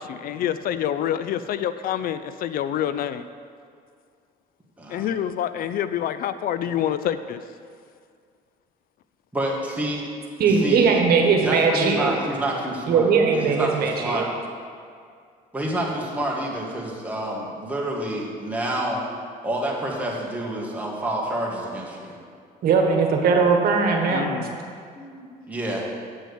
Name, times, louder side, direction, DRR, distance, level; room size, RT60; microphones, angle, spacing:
voice 1, 0.0-3.2 4.9-7.4 24.1-24.5, left 10 dB, 60° left, 12 dB, 0.4 m, -27 dB
voice 2, 4.8-5.1 9.3-10.0 10.4-10.9 11.4-14.3 15.5-19.0 19.4-22.2 24.9-25.9, right 1 dB, 10° right, -3 dB, 2.0 m, -28 dB
voice 3, 10.4-12.1 12.9-14.2 22.6-24.3, right 5 dB, 65° right, 2 dB, 1.4 m, -19 dB
8.1 x 6.2 x 7.1 m, 2.2 s
cardioid pair, 110°, 17 cm